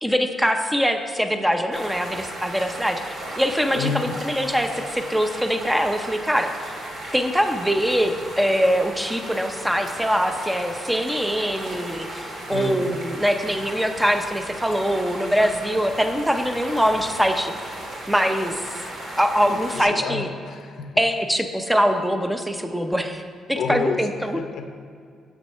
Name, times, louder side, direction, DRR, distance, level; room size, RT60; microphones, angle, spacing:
voice 1, 0.0-6.5 7.1-17.5 18.1-18.5 19.2-20.3 21.0-23.2 23.5-24.4, equal, 5° right, 6 dB, 0.7 m, -23 dB
sound 1, 1.7-19.8, right 1 dB, 60° right, 2.3 m, -36 dB
voice 2, 3.7-4.2 12.5-13.0 19.4-21.1 23.6-24.7, left 5 dB, 65° left, 6 dB, 0.7 m, -30 dB
8.1 x 7.3 x 5.6 m, 2.3 s
cardioid pair, 135°, 0 cm